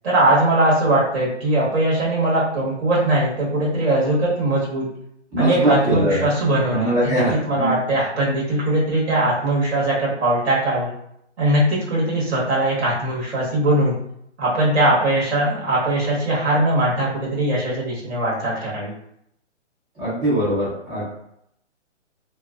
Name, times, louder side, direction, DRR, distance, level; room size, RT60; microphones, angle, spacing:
voice 1, 0.0-4.9 5.4-10.9 11.4-13.9 14.4-18.9, right 1 dB, 60° right, -6 dB, 1.3 m, -20 dB
voice 2, 5.3-6.3 6.7-7.8 19.9-21.0, right 1 dB, 15° right, -11 dB, 1.1 m, -22 dB
2.7 x 2.5 x 2.3 m, 0.74 s
figure-of-eight pair, 140°, 37 cm